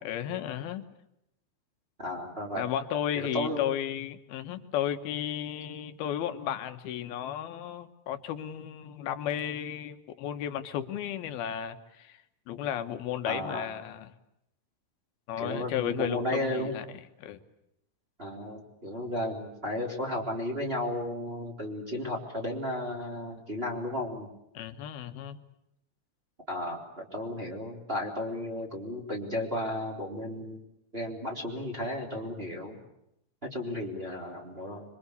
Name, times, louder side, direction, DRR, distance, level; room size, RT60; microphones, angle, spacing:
voice 1, 0.0-0.9 2.6-12.2 12.5-14.1 15.3-16.9 17.2-17.4 24.5-25.4, left 10 dB, 75° left, 8 dB, 3.1 m, -34 dB
voice 2, 2.0-2.6 3.2-3.6 13.2-13.7 15.4-16.7 18.2-24.3 26.5-30.6 30.9-32.8 33.4-34.8, left 1 dB, 15° right, -2 dB, 3.6 m, -34 dB
26.5 x 24.0 x 8.4 m, 0.81 s
omnidirectional pair, 4.6 m